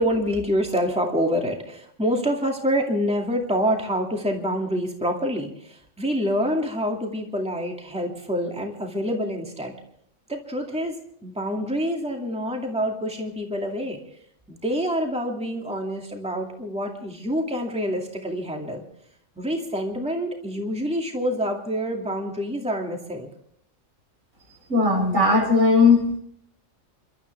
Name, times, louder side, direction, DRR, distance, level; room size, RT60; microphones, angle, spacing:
voice 1, 0.0-9.7 10.3-11.0 11.2-14.0 14.5-18.8 19.4-23.3, equal, 5° right, 1 dB, 2.3 m, -26 dB
voice 2, 24.7-26.2, left 3 dB, 85° right, 0 dB, 6.6 m, -18 dB
29.0 x 13.0 x 3.5 m, 0.70 s
omnidirectional pair, 1.3 m